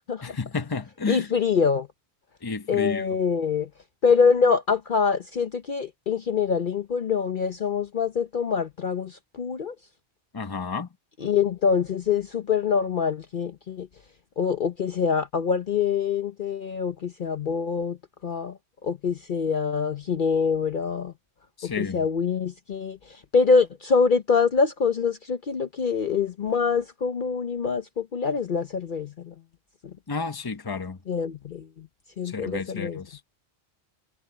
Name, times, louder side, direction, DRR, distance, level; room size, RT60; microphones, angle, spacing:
voice 1, 0.2-1.3 2.4-3.2 10.3-10.9 21.6-22.1 30.1-31.0 32.2-33.2, left 4 dB, 20° left, 0.9 m, -31 dB
voice 2, 1.1-1.9 2.7-3.7 4.0-9.7 11.2-13.9 14.4-18.0 18.2-18.5 18.8-21.1 21.6-23.0 23.3-29.3 31.1-31.9 32.2-33.0, left 5 dB, 50° left, 0.9 m, -25 dB
omnidirectional pair, 1.1 m